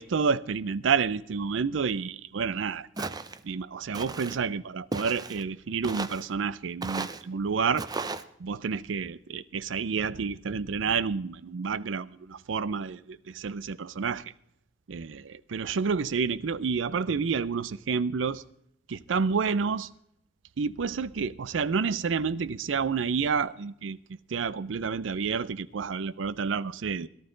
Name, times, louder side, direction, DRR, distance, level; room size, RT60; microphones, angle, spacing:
voice 1, 0.0-3.1 3.4-7.9 8.4-14.3 14.9-18.4 18.9-19.9 20.6-24.0 24.3-27.1, right 5 dB, 90° right, 0.5 m, -29 dB
Walk footsteps, 3.0-3.4 3.9-4.4 4.9-5.4 5.8-6.3 6.8-7.2 7.8-8.2, right 3 dB, 20° right, 0.5 m, -35 dB
17.5 x 12.0 x 3.8 m
head